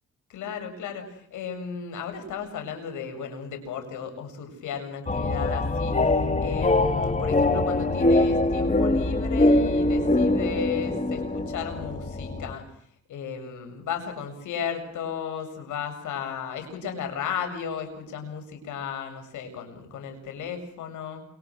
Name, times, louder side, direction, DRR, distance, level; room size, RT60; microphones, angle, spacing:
voice 1, 0.3-12.6 13.1-21.3, left 7 dB, 80° left, 6 dB, 7.7 m, -35 dB
sound 1, 5.1-12.5, left 2 dB, 25° left, 2.4 m, -23 dB
29.0 x 29.0 x 6.4 m, 0.66 s
cardioid pair, 90°, 30 cm